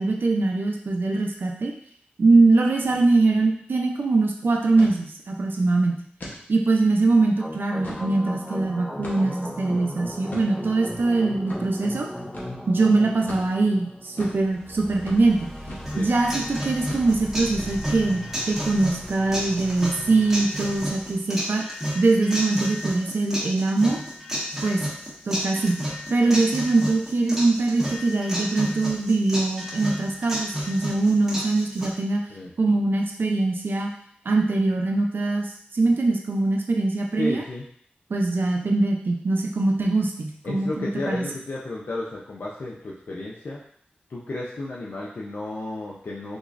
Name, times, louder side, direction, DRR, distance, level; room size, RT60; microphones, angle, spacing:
voice 1, 0.0-1.7 2.2-6.0 6.5-12.1 12.7-15.4 16.0-21.6 21.9-24.0 24.6-24.8 25.3-25.8 26.1-32.2 32.6-33.9 34.3-35.5 35.7-37.4 38.1-41.2, right 3 dB, 70° right, 1 dB, 0.5 m, -22 dB
sound 1, 2.8-3.0 3.3-3.4 3.8-4.1 4.8-5.0 5.5-5.6 6.2-6.4 6.9-7.0 7.6-8.1 9.0-9.4 10.3-10.5 11.5-11.6 12.3-12.5 13.3-13.5 14.2-14.4 15.0-15.2 15.7-15.9 16.2-16.5 16.9-17.3, left 1 dB, 55° left, 0.9 m, -38 dB
sound 2, 7.4-21.1, equal, 10° left, 0.6 m, -38 dB
sound 3, 15.9-31.9, equal, 10° right, 1.4 m, -32 dB
voice 2, 37.2-37.6 40.4-43.6 44.1-46.4, left 2 dB, 70° left, -5 dB, 0.5 m, -33 dB
3.7 x 3.0 x 2.5 m, 0.63 s
wide cardioid pair, 55°, 4 cm